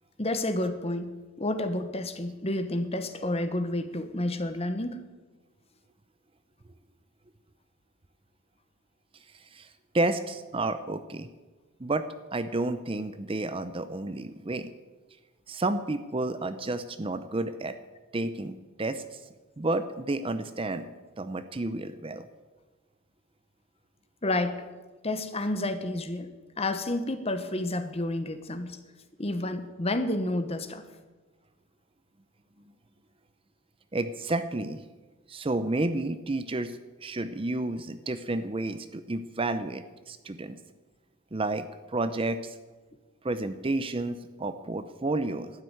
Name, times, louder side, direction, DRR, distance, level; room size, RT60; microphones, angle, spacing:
voice 1, 0.2-1.1 1.4-5.0 24.2-24.6 25.0-26.3 26.6-28.8 29.2-30.8, left 1 dB, 30° left, 10 dB, 1.1 m, -30 dB
voice 2, 9.9-11.3 11.8-14.7 15.5-17.8 18.1-19.2 19.6-20.9 21.2-22.3 33.9-34.8 35.3-40.6 41.3-41.7 41.9-42.6 43.2-45.5, right 2 dB, 25° right, 11 dB, 0.6 m, -31 dB
12.5 x 9.7 x 9.1 m, 1.3 s
head